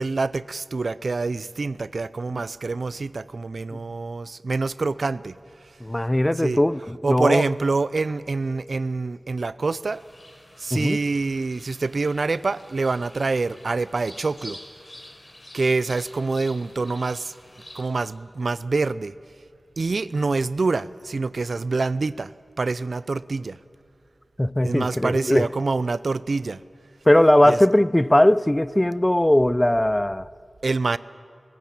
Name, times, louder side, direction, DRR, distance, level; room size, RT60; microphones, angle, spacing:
voice 1, 0.0-5.4 6.4-6.6 7.0-10.0 10.6-14.6 15.5-17.3 17.7-19.1 19.8-22.3 22.6-23.6 24.6-26.6 27.5-27.6 30.6-31.0, right 3 dB, 70° right, 0.5 m, -26 dB
voice 2, 5.8-7.4 10.7-11.0 24.4-25.5 27.1-30.3, left 1 dB, 15° left, 0.5 m, -19 dB
sound 1, 9.9-17.8, left 1 dB, 40° left, 4.3 m, -47 dB
27.0 x 15.0 x 8.7 m
wide cardioid pair, 50°, 0 cm